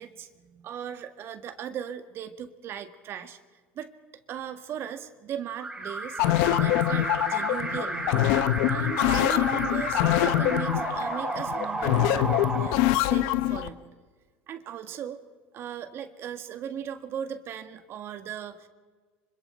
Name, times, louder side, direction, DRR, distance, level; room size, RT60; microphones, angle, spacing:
voice 1, 0.0-3.4 3.8-3.9 4.3-6.2 6.5-8.1 8.7-13.9 14.5-15.2 15.5-18.7, right 9 dB, 50° right, 8 dB, 1.8 m, -38 dB
Alarm, 5.6-13.5, right 2 dB, 20° right, 4.5 m, -32 dB
sound 1, 6.2-13.7, left 14 dB, 75° left, 0.9 m, -24 dB
25.5 x 25.5 x 4.5 m, 1.4 s
supercardioid pair, 95°, 5 cm